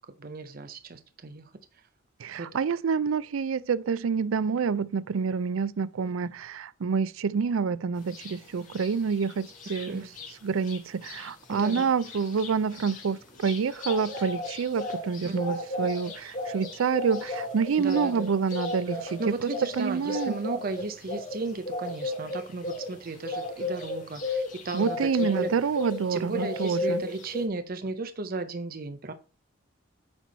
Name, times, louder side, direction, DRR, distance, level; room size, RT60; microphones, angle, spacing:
voice 1, 0.2-1.5 2.3-2.5 6.0-6.3 9.9-10.1 11.5-11.9 15.2-15.9 17.8-18.3 18.9-25.5 26.1-29.1, right 3 dB, 45° right, 0.6 m, -35 dB
voice 2, 2.2-10.0 10.4-19.5 19.8-20.4 24.7-27.0, right 5 dB, 85° right, 0.4 m, -27 dB
sound 1, 8.1-8.3 8.7-10.3 10.6-10.8 11.0-26.1 26.3-27.4, left 2 dB, 40° left, 1.9 m, -34 dB
8.7 x 4.6 x 4.0 m
head